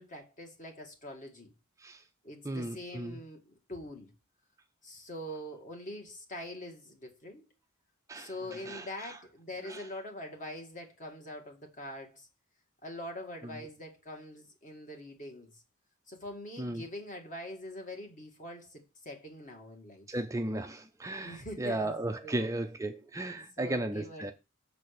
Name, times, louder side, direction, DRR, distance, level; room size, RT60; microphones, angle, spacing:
voice 1, 0.0-1.5 2.2-4.1 4.8-7.5 8.1-12.3 12.8-15.6 16.1-20.1 21.2-22.5 23.6-24.3, left 1 dB, 40° left, 1.9 m, -44 dB
voice 2, 2.4-3.2 8.1-9.2 9.7-9.8 16.6-16.8 20.1-24.3, right 1 dB, 15° right, 0.5 m, -35 dB
6.8 x 4.1 x 6.5 m
head